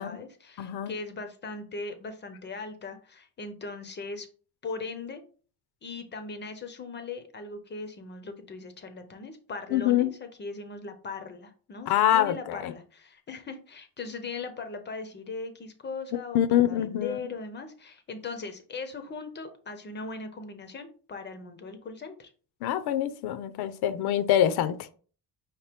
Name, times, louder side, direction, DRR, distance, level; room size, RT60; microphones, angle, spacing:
voice 1, 0.0-4.3 4.6-5.2 5.8-22.3, left 4 dB, 30° left, 0.5 m, -39 dB
voice 2, 0.6-0.9 9.7-10.1 11.9-12.7 16.3-17.2 22.6-25.0, left 11 dB, 70° left, 0.5 m, -25 dB
5.3 x 2.9 x 3.4 m
cardioid pair, 165°, 40 cm